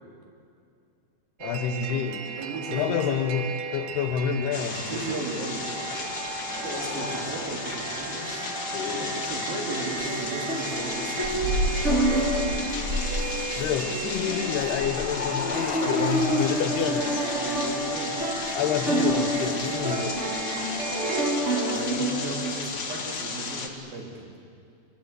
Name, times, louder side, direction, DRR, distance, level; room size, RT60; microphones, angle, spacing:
voice 1, 1.4-2.3 2.7-5.2 8.7-9.1 13.6-17.3 18.5-20.3, left 8 dB, 80° left, 9 dB, 3.1 m, -29 dB
sound 1, 1.4-21.4, right 5 dB, 80° right, 3.2 m, -37 dB
voice 2, 2.4-3.1 4.8-6.2 6.6-8.5 8.9-11.7 15.6-16.5 17.3-18.2 20.0-20.1 21.7-24.3, right 3 dB, 65° right, 0 dB, 4.9 m, -36 dB
sound 2, 4.5-23.7, left 4 dB, 50° left, 1.2 m, -34 dB
sound 3, 10.0-22.5, right 1 dB, 35° right, 1.1 m, -28 dB
26.5 x 22.5 x 8.3 m, 2.4 s
omnidirectional pair, 4.6 m